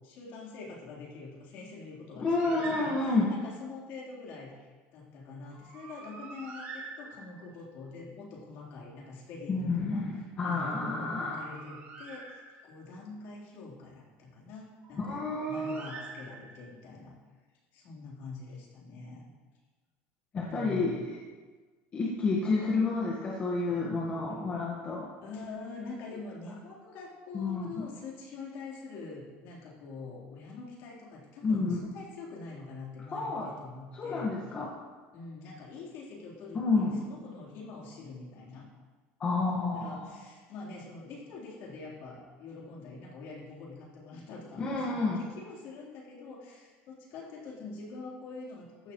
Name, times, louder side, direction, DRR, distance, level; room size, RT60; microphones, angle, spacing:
voice 1, 0.0-10.0 10.4-17.2 17.7-19.3 20.5-21.1 25.2-34.3 35.1-38.7 39.7-48.9, left 3 dB, 55° left, -5 dB, 3.7 m, -45 dB
voice 2, 2.2-3.3 9.5-11.4 15.0-15.8 20.3-21.2 21.9-25.1 27.3-27.8 31.4-31.8 33.1-33.5 33.9-34.7 36.5-37.0 39.2-40.2 44.6-45.2, left 3 dB, 25° left, -4 dB, 1.5 m, -30 dB
Bird, 2.3-3.4 5.5-7.6 11.0-12.9 14.8-16.7, right 3 dB, 40° right, 3.2 m, -46 dB
15.0 x 11.5 x 3.1 m, 1.4 s
cardioid pair, 165°, 5 cm